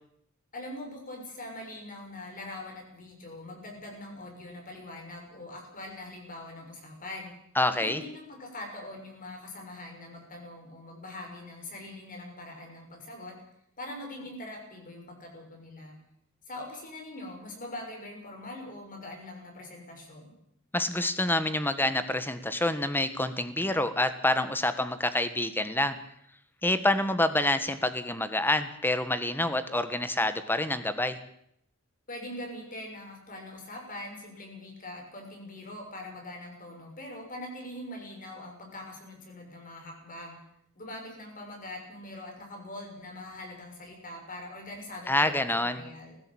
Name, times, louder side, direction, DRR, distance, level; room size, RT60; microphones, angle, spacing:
voice 1, 0.5-7.3 7.7-13.4 13.8-16.0 16.5-20.3 32.1-40.4 40.7-46.2, left 1 dB, 40° left, 2 dB, 6.4 m, -42 dB
voice 2, 7.5-8.0 20.7-26.0 26.6-31.2 45.1-45.8, left 1 dB, 10° left, 11 dB, 1.5 m, -27 dB
20.0 x 15.5 x 8.8 m, 0.74 s
head